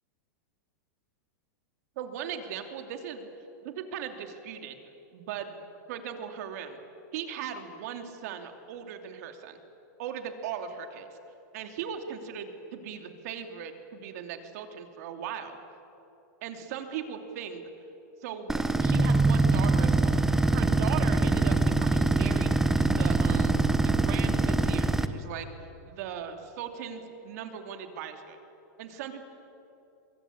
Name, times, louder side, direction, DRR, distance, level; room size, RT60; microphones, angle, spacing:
voice 1, 2.0-3.3 3.6-4.8 5.1-6.8 7.1-9.6 10.0-11.1 11.5-15.6 16.4-17.6 18.2-20.2 20.5-23.5 23.8-25.5 25.9-28.4 28.8-29.2, right 8 dB, 55° right, 5 dB, 2.9 m, -38 dB
sound 1, 18.5-25.1, right 3 dB, 5° right, 0.8 m, -24 dB
23.5 x 22.5 x 8.7 m, 3.0 s
supercardioid pair, 150°, 10 cm